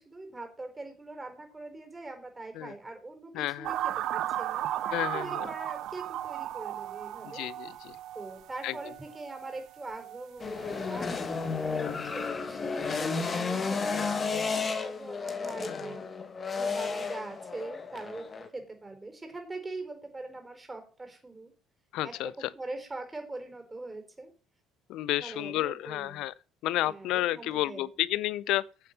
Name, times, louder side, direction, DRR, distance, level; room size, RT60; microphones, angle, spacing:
voice 1, 0.0-3.7 4.1-7.5 8.1-11.6 11.9-16.1 16.5-18.3 18.5-21.5 22.0-24.3 25.1-26.2 26.7-27.9, right 2 dB, 20° right, 4.6 m, -42 dB
voice 2, 3.3-3.7 4.9-5.5 7.2-8.0 8.6-8.9 15.7-15.9 21.9-22.5 24.9-26.3 26.6-28.6, left 15 dB, 65° left, 0.5 m, -31 dB
sound 1, 3.6-10.9 11.2-11.5, right 12 dB, 60° right, 0.6 m, -36 dB
sound 2, 10.4-18.5, left 5 dB, 35° left, 1.9 m, -32 dB
9.1 x 7.6 x 5.5 m
hypercardioid pair, 60°, 0 cm